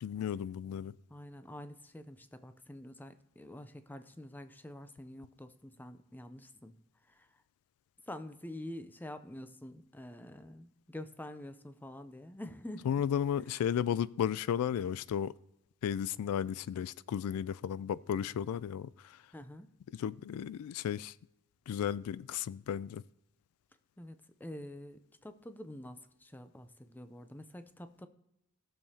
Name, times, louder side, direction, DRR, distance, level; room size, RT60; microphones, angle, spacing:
voice 1, 0.0-0.9 12.8-15.3 15.8-19.2 19.9-21.1 21.7-23.0, left 9 dB, 85° left, 0.3 m, -34 dB
voice 2, 1.1-6.7 7.0-7.4 8.0-12.9 13.4-13.5 19.3-19.7 24.0-28.1, left 1 dB, 10° left, 0.5 m, -47 dB
18.5 x 6.8 x 2.8 m
head